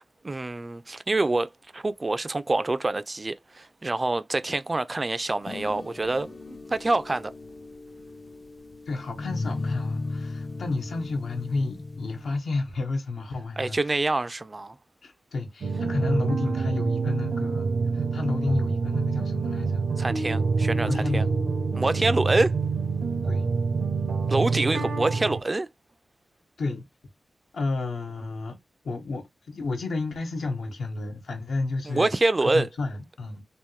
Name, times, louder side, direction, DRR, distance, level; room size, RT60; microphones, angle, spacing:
voice 1, 0.2-7.3 13.6-14.8 20.0-21.3 21.7-22.6 24.3-25.7 31.8-32.7, right 2 dB, 25° right, 0.3 m, -26 dB
sound 1, 5.5-12.4, left 3 dB, 35° left, 0.4 m, -36 dB
voice 2, 8.9-13.8 15.0-19.9 20.7-21.3 23.3-23.5 26.6-26.8 27.5-28.6 28.8-32.1 32.4-33.4, left 3 dB, 80° left, 1.2 m, -31 dB
sound 2, 15.6-25.4, right 4 dB, 85° right, 0.7 m, -26 dB
3.5 x 2.5 x 3.0 m
wide cardioid pair, 125°, 0 cm